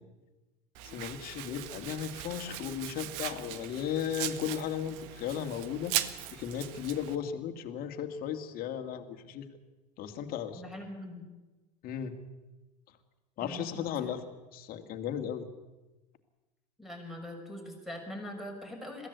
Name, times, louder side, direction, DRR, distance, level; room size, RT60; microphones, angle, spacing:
Domestic sounds home sounds, 0.7-7.1, right 13 dB, 60° right, 1.4 m, -39 dB
voice 1, 0.8-5.9 6.3-9.5 10.0-10.6 11.8-12.1 13.4-14.2 14.5-15.5, left 9 dB, 45° left, 6 dB, 2.4 m, -35 dB
voice 2, 10.5-11.2 13.4-14.1 16.8-19.1, left 1 dB, ahead, 2 dB, 6.2 m, -42 dB
22.0 x 15.5 x 8.2 m, 1.1 s
hypercardioid pair, 85°, 20 cm